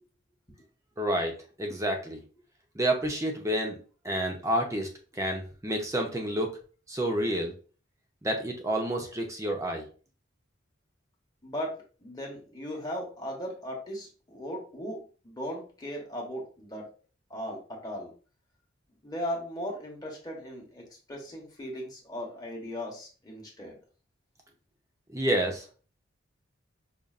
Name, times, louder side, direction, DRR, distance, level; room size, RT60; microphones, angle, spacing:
voice 1, 1.0-2.2 2.7-3.8 4.0-6.5 6.9-7.5 8.2-9.9 25.1-25.7, right 1 dB, 15° right, 2 dB, 0.6 m, -29 dB
voice 2, 11.4-16.9 17.3-18.1 19.0-23.8, equal, 20° left, -1 dB, 1.0 m, -37 dB
5.2 x 2.5 x 2.4 m, 0.38 s
head